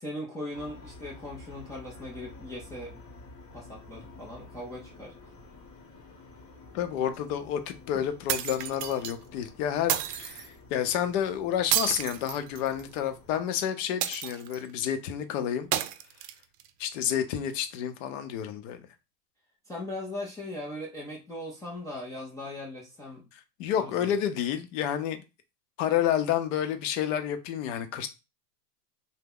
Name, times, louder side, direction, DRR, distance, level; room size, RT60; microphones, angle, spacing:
voice 1, 0.0-3.0 3.5-5.1 7.9-8.0 19.7-23.2 23.8-24.1, left 1 dB, 5° left, 0.4 m, -39 dB
sound 1, 0.5-13.4, left 3 dB, 25° left, 0.9 m, -50 dB
voice 2, 6.7-15.7 16.8-18.8 23.3-25.2 25.8-28.1, left 10 dB, 50° left, 0.7 m, -30 dB
sound 2, 8.3-9.1 9.9-10.5 11.7-12.9 14.0-14.7 15.7-16.7, right 11 dB, 75° right, 0.6 m, -30 dB
2.7 x 2.1 x 3.6 m
hypercardioid pair, 115°, 49 cm